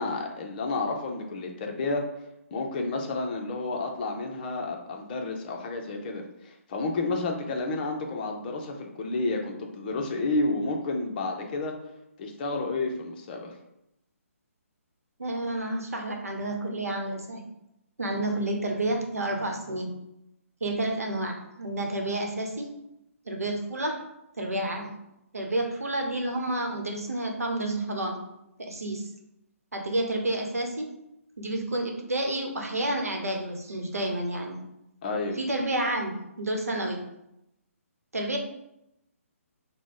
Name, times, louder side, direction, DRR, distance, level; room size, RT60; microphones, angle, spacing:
voice 1, 0.0-2.0 2.5-11.8 12.2-13.5 35.0-35.4, left 3 dB, 35° left, 2 dB, 0.7 m, -30 dB
voice 2, 15.2-17.4 18.0-19.9 20.6-22.7 23.3-24.1 24.4-24.9 25.3-28.2 28.6-29.1 29.7-30.9 31.4-34.6 35.4-37.0 38.1-38.4, right 1 dB, 85° right, 2 dB, 0.9 m, -30 dB
4.8 x 2.2 x 3.8 m, 0.85 s
figure-of-eight pair, 140°, 8 cm